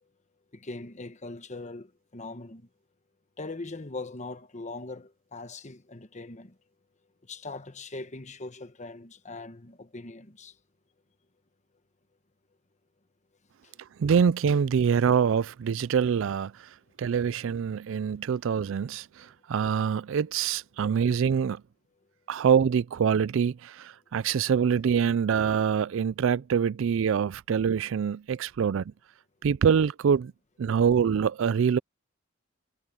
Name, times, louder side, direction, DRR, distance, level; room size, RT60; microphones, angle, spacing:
voice 1, 0.5-2.7 3.4-6.5 7.3-10.5, left 3 dB, 35° left, 1.2 m, -41 dB
voice 2, 14.0-16.7 17.0-21.6 22.3-28.9 29.4-30.3 30.6-31.8, right 7 dB, 70° right, 0.4 m, -25 dB
head